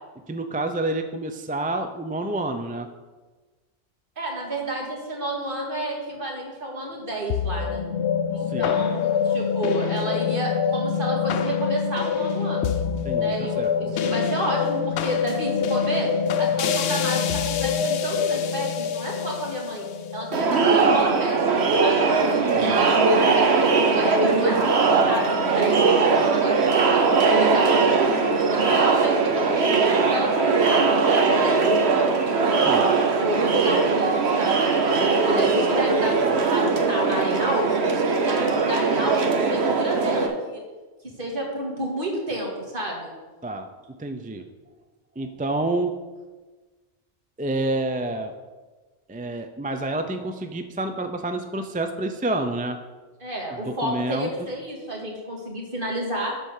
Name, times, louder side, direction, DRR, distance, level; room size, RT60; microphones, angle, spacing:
voice 1, 0.3-2.9 8.5-8.8 13.0-13.7 14.0-14.1 22.6-22.8 32.7-32.9 43.4-43.7 44.0-44.4 45.2-46.0 47.4-48.3 49.1-52.8 53.7-54.3, right 2 dB, 10° right, 7 dB, 0.4 m, -28 dB
voice 2, 4.2-7.8 8.3-12.8 13.2-16.1 16.4-19.9 20.1-22.1 22.6-27.1 27.4-31.8 32.4-36.1 36.5-37.8 38.1-40.6 41.2-43.1 53.2-56.3, right 1 dB, 55° right, -2 dB, 2.3 m, -30 dB
sound 1, 7.3-21.7, left 7 dB, 80° left, 0.9 m, -25 dB
Crowd, 20.3-40.3, right 4 dB, 75° right, 1.3 m, -20 dB
12.0 x 4.4 x 6.5 m, 1.3 s
omnidirectional pair, 1.1 m